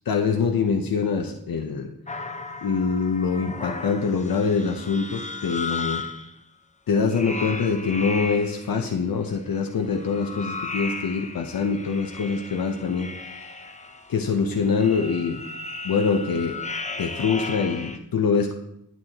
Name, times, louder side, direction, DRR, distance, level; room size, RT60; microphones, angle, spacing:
voice 1, 0.1-1.9 2.6-6.0 6.9-13.1 14.1-15.4 15.8-16.6 17.0-18.5, left 5 dB, 85° left, 3 dB, 0.7 m, -24 dB
sound 1, 2.1-6.3 7.1-8.8 9.8-18.0, left 3 dB, 20° left, 0.7 m, -35 dB
9.4 x 8.7 x 2.9 m, 0.78 s
wide cardioid pair, 95°, 34 cm